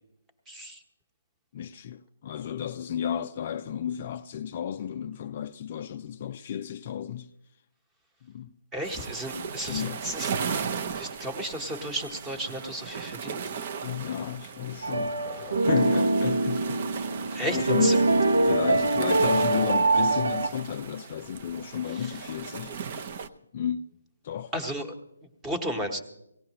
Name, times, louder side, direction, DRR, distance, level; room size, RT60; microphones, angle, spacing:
voice 1, 0.5-0.8 8.7-10.4 10.9-13.6 15.3-15.7 17.3-18.0 21.9-22.2 24.5-24.9 25.4-26.0, right 1 dB, 10° right, 1.1 m, -34 dB
voice 2, 1.5-7.3 8.2-8.5 9.7-10.0 13.8-15.2 15.7-17.0 17.3-18.1 18.4-22.8 23.5-23.9 24.2-24.5, left 9 dB, 35° left, 0.4 m, -32 dB
sound 1, 8.8-23.3, right 6 dB, 35° right, 0.7 m, -37 dB
sound 2, 14.8-20.5, right 2 dB, 75° right, 1.1 m, -24 dB
18.0 x 16.5 x 3.0 m
hypercardioid pair, 160°, 0 cm